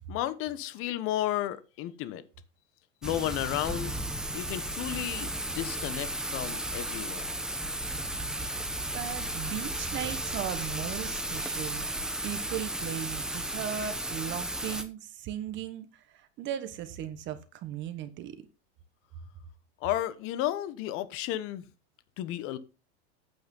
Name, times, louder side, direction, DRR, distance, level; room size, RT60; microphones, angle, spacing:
voice 1, 0.1-2.2 3.0-4.0 4.3-7.3 19.8-21.6 22.2-22.6, left 13 dB, 40° left, 15 dB, 1.1 m, -33 dB
Thunder / Rain, 3.0-14.8, right 1 dB, ahead, 1.0 m, -34 dB
voice 2, 8.9-11.9 12.2-18.3, right 10 dB, 35° right, 10 dB, 1.3 m, -37 dB
9.1 x 8.7 x 5.5 m, 0.31 s
supercardioid pair, 155°, 33 cm